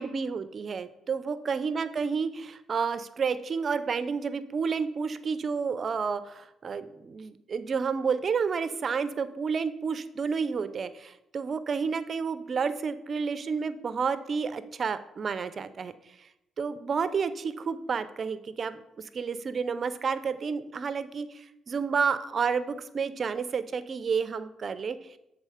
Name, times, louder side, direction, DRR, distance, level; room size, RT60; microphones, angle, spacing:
voice 1, 0.0-15.9 16.6-18.8 19.1-25.0, right 5 dB, 45° right, 13 dB, 0.4 m, -30 dB
7.6 x 3.6 x 4.9 m, 0.85 s
cardioid pair, 90°, 0 cm